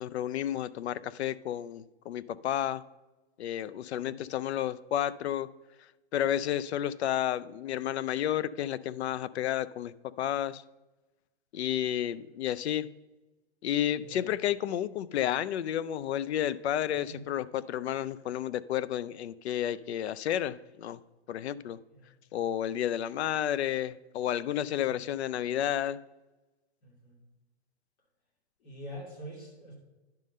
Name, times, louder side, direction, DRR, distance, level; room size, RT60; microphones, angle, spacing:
voice 1, 0.0-2.8 3.4-5.5 6.1-10.6 11.5-12.9 13.6-21.0 21.3-21.8 22.3-26.0, left 11 dB, 75° left, 18 dB, 0.5 m, -31 dB
voice 2, 13.9-14.3 16.9-17.2 21.9-22.1 24.9-25.1 26.8-27.2 28.6-29.7, equal, 40° left, -2 dB, 2.8 m, -45 dB
10.5 x 3.7 x 6.5 m, 1.1 s
hypercardioid pair, 160°, 33 cm